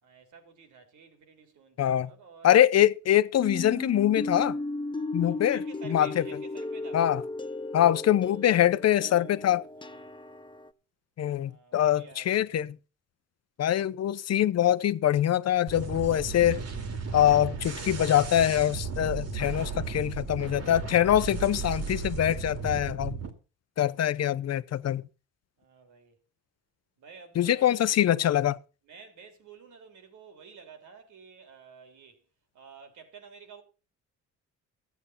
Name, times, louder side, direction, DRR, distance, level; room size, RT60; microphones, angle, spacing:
voice 1, 0.0-2.6 5.2-7.1 9.7-10.1 11.4-12.7 24.1-25.0 25.6-26.2 27.0-28.1 28.8-32.2 32.5-33.6, right 5 dB, 75° right, 3.6 m, -51 dB
voice 2, 1.8-2.1 2.4-4.5 5.1-5.6 5.9-6.1 6.9-7.2 7.7-9.6 11.2-12.7 13.6-16.6 17.1-23.2 23.8-25.0 27.4-28.6, left 11 dB, 55° left, 0.8 m, -24 dB
sound 1, 3.4-10.7, left 2 dB, 15° left, 1.0 m, -35 dB
sound 2, 15.7-23.3, right 5 dB, 55° right, 2.5 m, -35 dB
14.0 x 8.3 x 5.6 m
cardioid pair, 90°, 30 cm